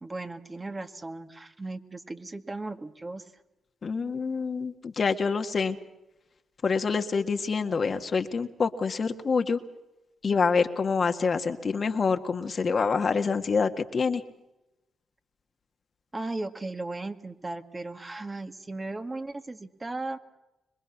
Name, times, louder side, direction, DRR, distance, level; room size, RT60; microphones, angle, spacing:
voice 1, 0.0-3.3 16.1-20.2, right 2 dB, 30° right, 6 dB, 2.1 m, -36 dB
voice 2, 3.8-5.8 6.6-9.6 10.2-14.2, left 5 dB, 50° left, 6 dB, 1.8 m, -26 dB
25.5 x 22.0 x 5.9 m, 0.97 s
hypercardioid pair, 45°, 0 cm